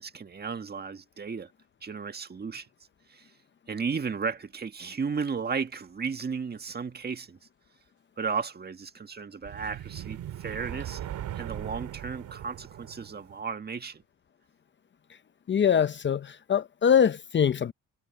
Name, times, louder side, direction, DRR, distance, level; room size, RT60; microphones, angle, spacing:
voice 1, 0.0-1.5 1.8-2.7 3.1-3.3 3.7-7.4 8.2-11.1 11.3-14.0, right 5 dB, 35° right, 1.6 m, -34 dB
sound 1, 9.4-13.4, right 12 dB, 80° right, 2.6 m, -39 dB
voice 2, 15.5-17.7, left 8 dB, 40° left, 0.7 m, -23 dB
cardioid pair, 90°, 30 cm